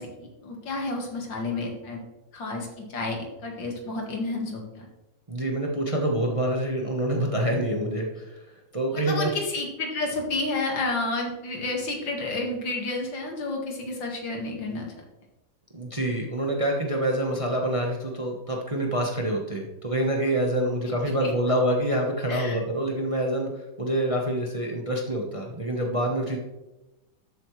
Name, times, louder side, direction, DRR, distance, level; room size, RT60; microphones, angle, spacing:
voice 1, 0.0-2.0 2.3-4.9 8.9-14.9 21.0-21.3 22.3-22.6, left 2 dB, 75° left, 1 dB, 2.6 m, -31 dB
voice 2, 5.3-8.4 8.7-9.3 15.7-26.4, right 1 dB, 20° right, 0 dB, 1.0 m, -26 dB
12.5 x 8.4 x 3.2 m, 1.0 s
omnidirectional pair, 2.1 m